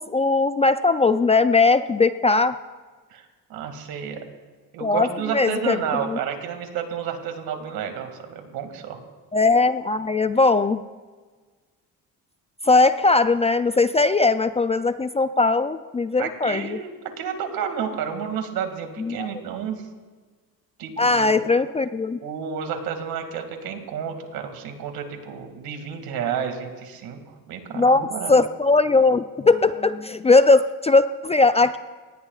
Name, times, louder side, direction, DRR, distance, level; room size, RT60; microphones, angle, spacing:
voice 1, 0.0-2.5 4.8-5.1 5.3-5.8 6.1-6.2 9.3-10.8 12.6-16.8 19.0-19.4 21.0-22.2 27.7-31.8, left 3 dB, 20° left, 11 dB, 0.3 m, -19 dB
voice 2, 3.5-4.2 4.7-9.0 16.2-19.8 20.8-21.5 22.2-27.2 27.5-28.3, right 7 dB, 75° right, 5 dB, 2.3 m, -31 dB
23.5 x 19.0 x 2.4 m, 1.4 s
cardioid pair, 105°, 36 cm